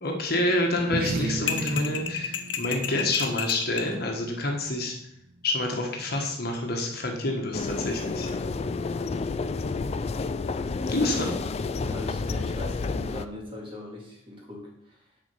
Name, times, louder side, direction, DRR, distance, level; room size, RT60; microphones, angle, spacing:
voice 1, 0.0-4.9 5.4-8.3 10.9-11.3, left 1 dB, 55° left, 2 dB, 1.4 m, -28 dB
sound 1, 0.8-5.6, right 3 dB, 50° right, 0.6 m, -36 dB
sound 2, 1.5-3.9, left 7 dB, 75° left, 0.9 m, -31 dB
sound 3, 7.5-13.2, left 4 dB, 35° left, 0.3 m, -30 dB
voice 2, 11.7-15.0, left 2 dB, 25° right, -2 dB, 2.2 m, -40 dB
7.2 x 4.5 x 6.9 m, 0.76 s
head